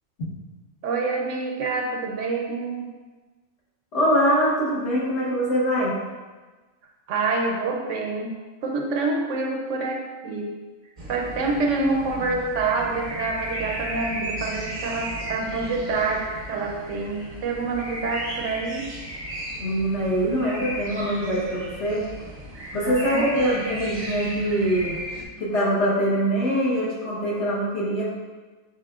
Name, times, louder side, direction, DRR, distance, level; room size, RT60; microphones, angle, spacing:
voice 1, 0.8-2.9 7.1-8.3 8.6-10.5 11.1-18.9 22.7-23.6, right 3 dB, 70° right, 0 dB, 0.9 m, -27 dB
voice 2, 3.9-5.9 19.6-22.0 22.7-25.0 25.4-28.0, equal, 55° left, -7 dB, 1.5 m, -23 dB
sound 1, 11.0-25.2, right 1 dB, 40° right, 0.7 m, -35 dB
6.6 x 3.3 x 2.4 m, 1.3 s
omnidirectional pair, 1.4 m